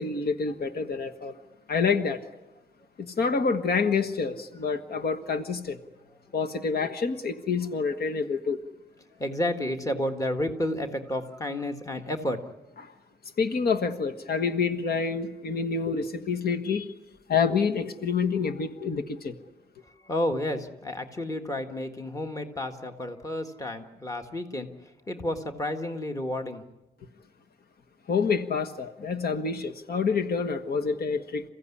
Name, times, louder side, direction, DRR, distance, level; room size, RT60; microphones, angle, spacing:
voice 1, 0.0-1.4 1.7-2.2 3.0-5.8 6.3-8.6 12.8-12.9 13.4-16.9 17.3-19.4 28.1-31.4, left 5 dB, 75° left, 7 dB, 1.4 m, -27 dB
voice 2, 9.2-12.4 19.8-26.7, left 1 dB, 20° left, 6 dB, 1.7 m, -31 dB
28.5 x 15.5 x 9.9 m, 0.98 s
wide cardioid pair, 155°, 16 cm